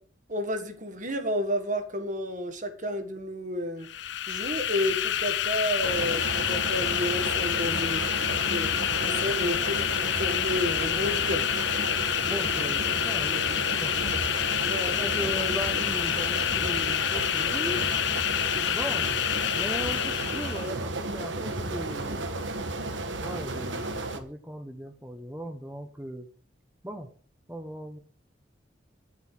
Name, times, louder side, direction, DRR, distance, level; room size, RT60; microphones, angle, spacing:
voice 1, 0.3-3.9 4.3-8.7 9.0-11.5 14.6-15.3, equal, 45° right, 7 dB, 1.7 m, -31 dB
sound 1, 3.8-20.7, left 11 dB, 70° left, 0.5 m, -28 dB
sound 2, 5.8-24.2, right 2 dB, 85° right, 1.6 m, -33 dB
voice 2, 12.2-14.4 14.9-17.8 18.7-19.2 19.5-22.3 23.2-26.3 26.8-27.1 27.5-28.0, equal, 10° right, 4 dB, 1.0 m, -37 dB
10.5 x 7.5 x 7.5 m, 0.44 s
head